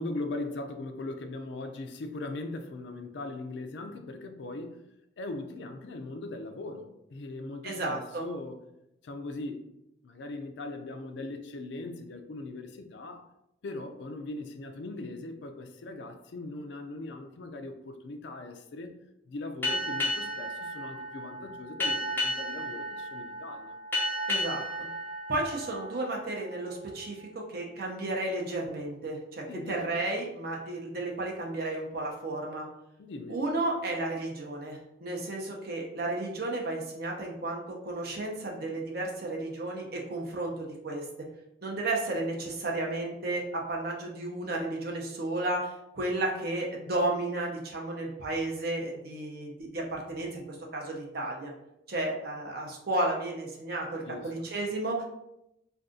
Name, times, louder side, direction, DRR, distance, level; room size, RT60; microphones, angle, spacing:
voice 1, 0.0-4.8 5.2-8.6 9.0-9.7 10.0-13.3 13.6-19.0 19.2-23.8 29.5-29.7 33.0-33.4 53.9-54.3, left 2 dB, 65° left, 6 dB, 0.4 m, -39 dB
voice 2, 7.6-8.3 24.3-24.9 25.3-32.6 33.3-41.3 41.6-51.5 51.9-55.0, right 2 dB, 50° right, -1 dB, 0.7 m, -33 dB
Boat Water vehicle, 19.6-26.7, left 1 dB, 10° left, 0.6 m, -33 dB
2.6 x 2.3 x 3.6 m, 0.84 s
head